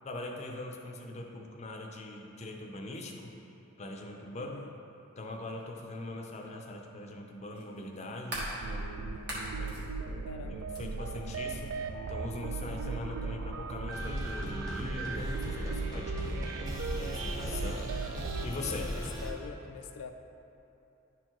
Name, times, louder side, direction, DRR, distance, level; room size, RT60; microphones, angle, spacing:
voice 1, 0.0-3.3 3.8-4.6 5.2-9.2 9.6-9.8 10.5-11.8 12.1-17.9 18.4-18.9, left 2 dB, 30° left, 1 dB, 0.5 m, -41 dB
voice 2, 4.4-4.7 10.3-10.6 17.0-17.3 18.7-20.1, left 6 dB, 85° left, 6 dB, 0.4 m, -44 dB
sound 1, 5.6-5.7 7.5-8.6 9.1-9.8 10.7-10.8, right 1 dB, 50° right, 1.4 m, -39 dB
sound 2, 8.3-18.5, right 4 dB, 70° right, 0.4 m, -37 dB
sound 3, 13.9-19.3, equal, 15° right, 0.9 m, -38 dB
10.5 x 4.4 x 3.0 m, 2.8 s
head